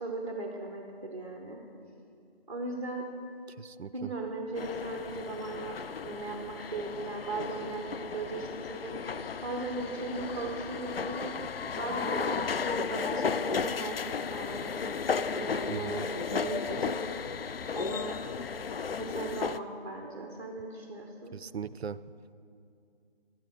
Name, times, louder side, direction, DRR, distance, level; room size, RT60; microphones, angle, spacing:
voice 1, 0.0-1.6 2.5-3.1 3.9-9.0 9.4-11.3 11.7-14.7 15.1-16.0 16.3-17.0 17.7-18.2 18.9-21.3, right 2 dB, 35° right, 1 dB, 0.9 m, -38 dB
voice 2, 3.6-4.1 15.7-16.0 21.3-22.0, right 7 dB, 85° right, 17 dB, 0.5 m, -38 dB
sound 1, 4.6-19.6, left 5 dB, 70° left, 0.4 m, -34 dB
12.0 x 9.1 x 4.7 m, 2.5 s
figure-of-eight pair, 160°, 31 cm